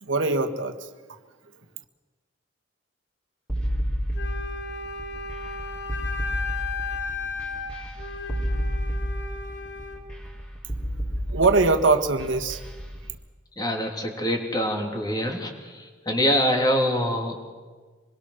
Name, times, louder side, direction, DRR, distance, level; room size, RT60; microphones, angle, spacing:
voice 1, 0.0-1.2 10.8-11.0 11.3-12.6, right 3 dB, 90° right, 6 dB, 1.5 m, -23 dB
sound 1, 3.5-13.0, equal, 5° left, 3.6 m, -30 dB
Wind instrument woodwind instrument, 4.1-10.0, left 4 dB, 70° left, 2.8 m, -35 dB
voice 2, 13.6-17.5, equal, 20° left, 2 dB, 2.8 m, -25 dB
25.5 x 21.5 x 6.4 m, 1.4 s
head